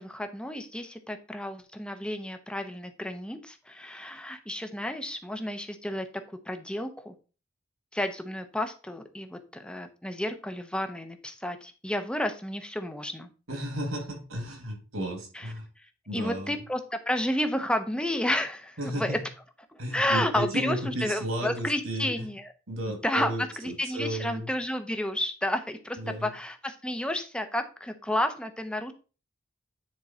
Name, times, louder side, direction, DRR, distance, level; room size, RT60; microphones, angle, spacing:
voice 1, 0.0-6.1 6.5-7.1 7.9-13.3 15.3-15.5 16.1-19.2 19.9-22.5 23.0-23.3 23.6-28.9, left 1 dB, 5° left, 7 dB, 0.7 m, -31 dB
voice 2, 13.5-15.7 16.1-16.6 18.8-19.2 19.8-22.3 22.7-24.5 26.0-26.3, right 1 dB, 80° right, 3 dB, 2.4 m, -33 dB
9.8 x 3.7 x 4.3 m, 0.34 s
head